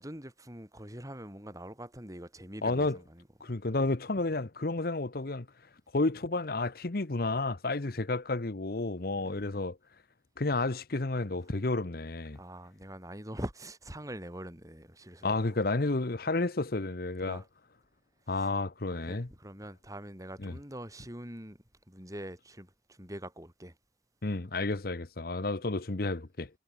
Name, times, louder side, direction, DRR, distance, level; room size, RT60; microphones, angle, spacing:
voice 1, 0.0-3.2 9.1-9.4 12.3-15.4 17.2-17.5 18.3-18.5 18.9-23.8, right 1 dB, 20° right, 6.3 m, -44 dB
voice 2, 2.6-3.0 3.4-5.5 5.9-9.8 10.4-12.4 15.2-17.4 18.3-19.3 20.4-20.5 24.2-26.5, left 2 dB, 55° left, 1.0 m, -31 dB
head